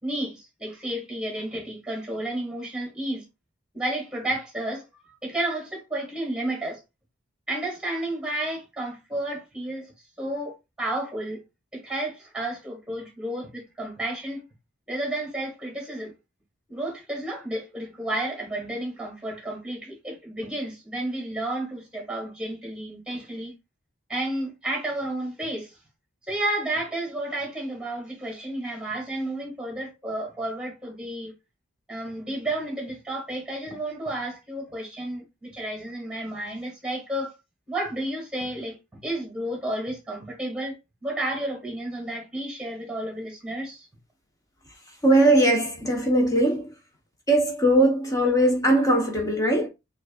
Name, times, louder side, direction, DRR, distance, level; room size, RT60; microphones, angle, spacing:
voice 1, 0.0-3.2 3.7-4.9 5.2-6.8 7.5-9.9 10.2-11.4 11.7-14.4 14.9-16.1 16.7-23.5 24.1-25.8 26.3-31.3 31.9-37.3 37.7-43.9, right 1 dB, 5° right, 2.0 m, -31 dB
voice 2, 45.0-46.7 47.3-49.7, right 1 dB, 15° left, 1.0 m, -20 dB
6.3 x 2.6 x 2.4 m
head